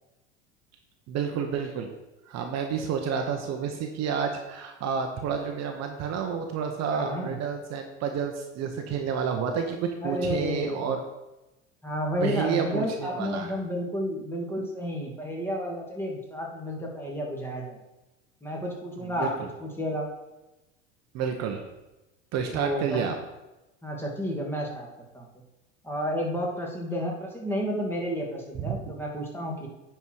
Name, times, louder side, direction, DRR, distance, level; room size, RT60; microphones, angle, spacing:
voice 1, 1.1-1.9 2.3-11.0 12.2-13.5 19.0-19.3 21.1-21.6 22.3-23.2 28.7-28.9, right 7 dB, 45° right, 4 dB, 1.1 m, -30 dB
voice 2, 6.9-7.4 10.0-10.9 11.8-17.8 18.4-19.3 19.6-20.0 22.5-23.1 23.8-24.9 25.1-25.2 25.8-29.7, equal, 5° left, -2 dB, 2.5 m, -31 dB
9.6 x 4.6 x 4.8 m, 1.0 s
hypercardioid pair, 75°, 35 cm